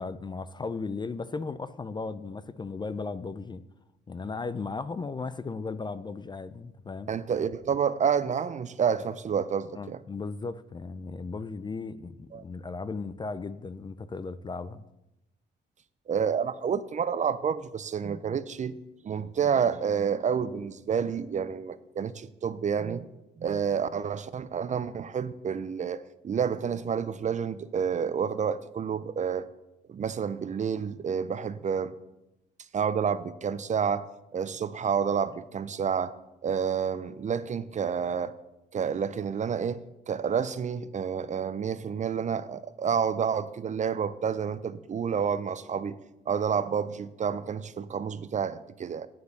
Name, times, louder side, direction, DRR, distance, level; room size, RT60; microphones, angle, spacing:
voice 1, 0.0-3.6 4.1-7.1 9.8-14.8, left 4 dB, 20° left, 0.4 m, -36 dB
voice 2, 7.1-10.0 12.3-12.4 16.1-18.7 19.0-23.0 23.4-29.5 29.9-32.0 32.7-34.1 34.3-36.1 36.4-38.3 38.7-46.0 46.3-49.1, right 7 dB, 40° right, 0.5 m, -29 dB
9.2 x 4.8 x 6.5 m
cardioid pair, 90°, 20 cm